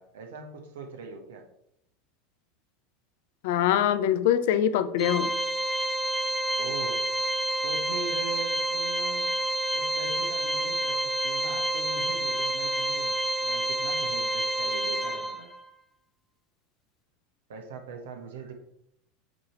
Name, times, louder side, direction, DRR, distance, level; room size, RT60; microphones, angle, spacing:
voice 1, 0.0-1.5 6.6-7.1 7.6-9.3 9.7-15.5 17.5-18.5, right 4 dB, 75° right, 1.1 m, -41 dB
voice 2, 3.4-5.3, left 10 dB, 70° left, 0.5 m, -23 dB
Organ, 5.0-15.7, right 1 dB, 10° left, 0.8 m, -28 dB
7.4 x 3.2 x 4.4 m
hypercardioid pair, 85°, 0 cm